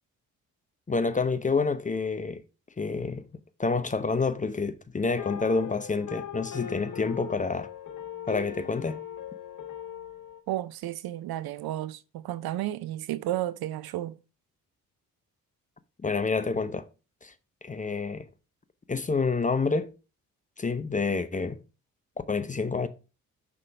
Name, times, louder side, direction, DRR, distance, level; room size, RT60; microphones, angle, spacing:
voice 1, 0.9-2.4 2.8-3.3 3.6-7.7 8.3-9.0 16.0-16.9 17.2-17.3 17.6-18.3 18.9-19.9 20.6-21.6 22.3-22.9, left 4 dB, 20° left, 0.7 m, -28 dB
sound 1, 5.2-10.4, left 9 dB, 45° left, 1.2 m, -39 dB
voice 2, 10.5-14.2, right 14 dB, 60° right, 0.5 m, -32 dB
5.7 x 3.5 x 5.0 m
hypercardioid pair, 40°, 42 cm